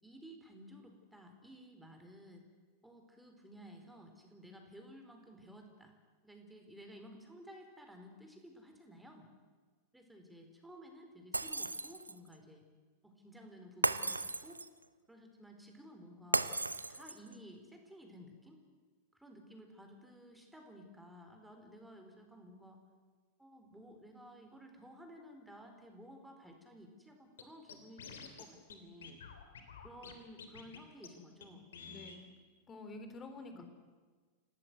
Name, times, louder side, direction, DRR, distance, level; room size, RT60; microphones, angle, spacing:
voice 1, 0.0-2.4 2.8-5.9 6.2-9.3 9.9-12.6 13.0-14.6 15.1-16.6 16.9-18.6 19.1-22.8 23.4-29.2 29.8-31.7 33.5-33.7, equal, 5° right, 4 dB, 4.4 m, -55 dB
Shatter, 11.3-12.3 13.8-14.8 16.3-17.3, right 2 dB, 80° right, 0.8 m, -35 dB
Scratching (performance technique), 27.4-27.5 27.7-28.4 28.7-28.8 29.0-30.1 30.4-30.8 31.0-31.1 31.4-31.5 31.7-32.2, left 6 dB, 65° left, 3.1 m, -49 dB
voice 2, 31.9-32.2 32.7-33.7, left 2 dB, 20° left, 7 dB, 3.7 m, -48 dB
27.5 x 18.5 x 8.1 m, 1.4 s
figure-of-eight pair, 90°, 0 cm